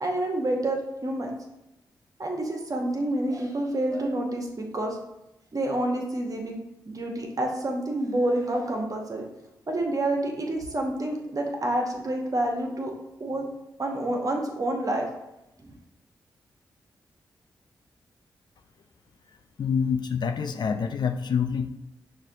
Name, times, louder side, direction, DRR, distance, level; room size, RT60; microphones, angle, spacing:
voice 1, 0.0-1.3 2.2-5.0 5.5-6.6 6.9-9.2 9.7-12.9 13.2-13.4 13.8-15.1, right 1 dB, 45° right, 1 dB, 0.9 m, -28 dB
voice 2, 19.6-21.7, left 6 dB, 60° left, 8 dB, 0.4 m, -26 dB
5.6 x 2.6 x 2.6 m, 0.90 s
supercardioid pair, 40°, 8 cm